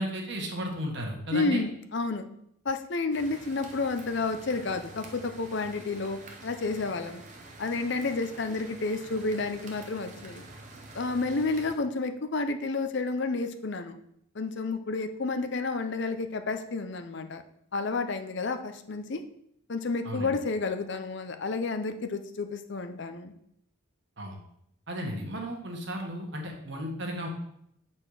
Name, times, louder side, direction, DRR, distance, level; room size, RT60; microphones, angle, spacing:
voice 1, 0.0-1.6 20.0-20.3 24.2-24.4 24.9-27.3, equal, 55° right, 1 dB, 1.5 m, -34 dB
voice 2, 1.3-2.3 2.6-7.2 7.6-10.4 10.9-14.0 14.3-17.4 17.7-19.2 19.7-23.3, left 3 dB, 55° left, 8 dB, 0.6 m, -30 dB
sound 1, 3.1-11.7, right 2 dB, 35° right, 0.8 m, -47 dB
7.7 x 4.3 x 4.8 m, 0.74 s
head